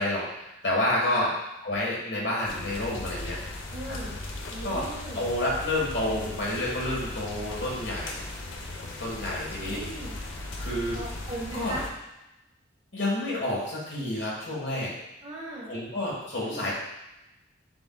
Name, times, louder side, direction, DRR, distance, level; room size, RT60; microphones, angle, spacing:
voice 1, 0.0-1.3 1.6-3.4 3.8-4.0 4.6-4.9 5.1-8.2 9.0-9.8 10.6-11.0 11.5-11.7 12.9-14.9 15.7-16.7, left 1 dB, 70° left, -5 dB, 1.4 m, -29 dB
voice 2, 1.0-1.3 3.7-4.2 4.5-5.2 9.6-10.2 10.9-11.9 15.2-15.7 16.5-16.7, right 1 dB, 35° right, -5 dB, 1.1 m, -38 dB
sound 1, 2.4-11.9, left 2 dB, 90° left, 0.6 m, -37 dB
7.7 x 2.6 x 2.3 m, 0.93 s
head